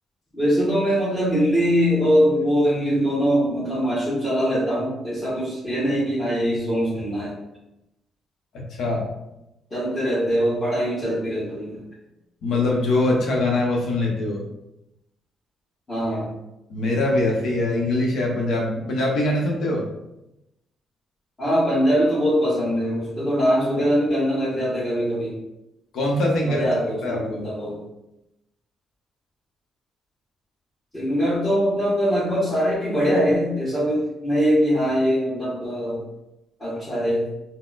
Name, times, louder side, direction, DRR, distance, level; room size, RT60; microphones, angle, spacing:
voice 1, 0.3-7.3 9.7-11.8 15.9-16.3 21.4-25.4 26.4-27.8 30.9-36.0 36.6-37.3, equal, 25° left, -11 dB, 1.3 m, -22 dB
voice 2, 8.5-9.1 12.4-14.4 16.7-19.8 25.9-26.6 27.0-27.4, left 2 dB, 75° left, -1 dB, 0.9 m, -23 dB
4.1 x 2.1 x 2.5 m, 0.89 s
cardioid pair, 90°, 0 cm